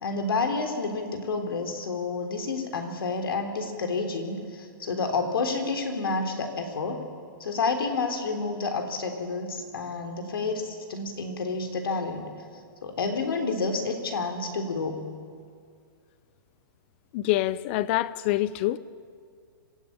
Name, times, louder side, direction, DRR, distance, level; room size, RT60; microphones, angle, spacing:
voice 1, 0.0-7.0 7.4-12.3 12.8-15.1, left 4 dB, 90° left, 3.6 m, -29 dB
voice 2, 17.1-18.8, left 15 dB, 30° left, 0.6 m, -26 dB
26.0 x 16.0 x 8.8 m
hypercardioid pair, 165°, 12 cm